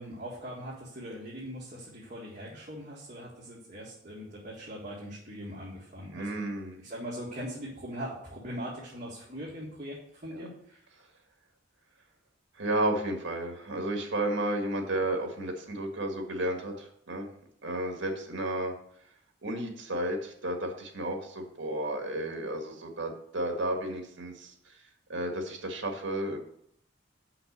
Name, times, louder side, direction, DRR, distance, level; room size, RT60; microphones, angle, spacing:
voice 1, 0.0-6.4 6.8-10.8, equal, 40° right, -6 dB, 1.9 m, -41 dB
voice 2, 6.1-6.8 10.3-10.4 12.6-17.3 17.6-18.7 19.4-24.5 25.1-26.4, right 1 dB, 65° right, 3 dB, 1.7 m, -32 dB
6.1 x 5.9 x 6.7 m, 0.68 s
head